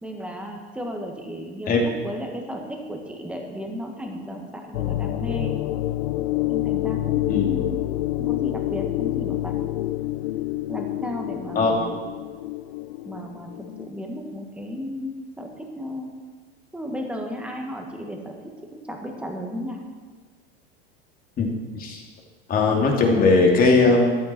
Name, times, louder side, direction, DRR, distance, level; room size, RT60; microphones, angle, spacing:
voice 1, 0.0-5.6 6.5-7.8 8.2-9.5 10.7-12.0 13.1-16.1 16.7-19.8, equal, 5° right, 2 dB, 1.8 m, -34 dB
sound 1, 4.7-13.9, left 16 dB, 75° left, 0.6 m, -27 dB
voice 2, 11.5-11.9 21.4-21.5 21.8-22.0 22.5-24.2, left 3 dB, 30° left, 1 dB, 2.5 m, -19 dB
14.5 x 11.0 x 4.5 m, 1.4 s
supercardioid pair, 135°, 30 cm